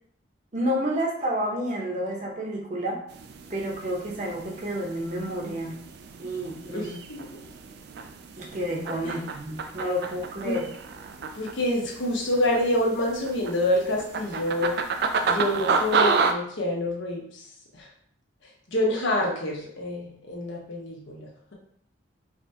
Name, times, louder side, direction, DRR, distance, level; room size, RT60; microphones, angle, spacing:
voice 1, 0.5-3.0 3.5-5.7 6.2-6.9 8.4-10.6, equal, 40° right, -2 dB, 0.8 m, -30 dB
sound 1, 3.1-16.3, right 4 dB, 55° right, 0.3 m, -31 dB
voice 2, 6.7-7.4 9.0-9.2 10.4-10.6 11.3-14.7 15.3-17.5 17.7-17.9 18.4-21.6, left 1 dB, 80° left, -2 dB, 1.0 m, -27 dB
4.8 x 2.3 x 2.7 m, 0.64 s
head